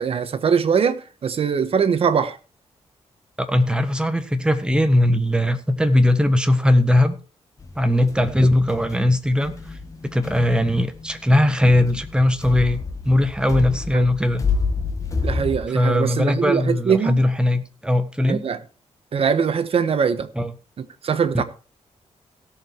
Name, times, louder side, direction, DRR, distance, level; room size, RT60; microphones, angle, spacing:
voice 1, 0.0-2.4 13.9-14.1 15.2-17.2 18.3-18.6 19.1-20.3 20.8-21.4, right 6 dB, 55° right, 1.3 m, -22 dB
voice 2, 3.4-7.2 7.8-9.5 10.1-14.4 15.7-18.4 20.4-20.5, left 1 dB, 5° right, 1.4 m, -19 dB
sound 1, 7.6-15.6, left 4 dB, 25° left, 1.7 m, -29 dB
17.0 x 6.9 x 4.6 m
wide cardioid pair, 125°, 12 cm